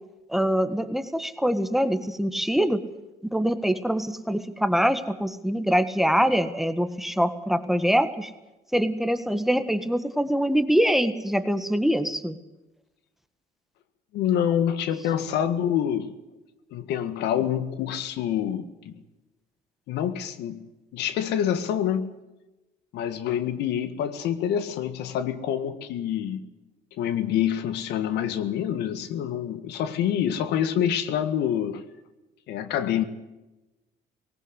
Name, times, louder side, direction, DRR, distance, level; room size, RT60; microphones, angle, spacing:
voice 1, 0.3-2.8 3.2-8.3 8.7-12.3, equal, ahead, 12 dB, 1.5 m, -24 dB
voice 2, 14.1-16.2 16.7-19.0 19.9-22.1 22.9-26.4 27.0-31.8 32.5-33.0, left 9 dB, 80° left, 12 dB, 1.8 m, -27 dB
19.0 x 18.0 x 8.2 m, 1.0 s
cardioid pair, 110°, 17 cm